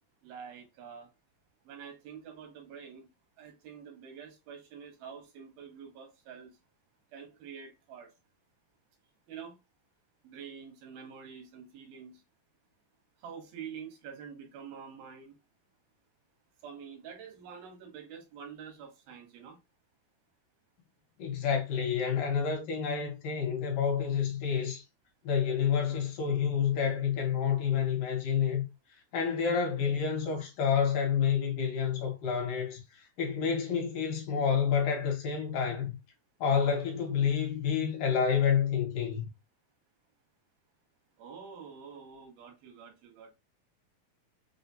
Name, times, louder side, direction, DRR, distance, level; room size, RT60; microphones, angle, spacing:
voice 1, 0.2-1.1 1.6-3.1 3.4-6.6 7.1-8.1 9.3-9.6 10.2-12.2 13.2-15.3 16.6-19.6 41.2-43.3, right 7 dB, 90° right, 3.0 m, -47 dB
voice 2, 21.2-24.8 25.2-28.6 29.1-32.8 33.2-36.0 36.4-39.3, left 7 dB, 75° left, 2.6 m, -29 dB
6.4 x 2.2 x 2.7 m
omnidirectional pair, 4.1 m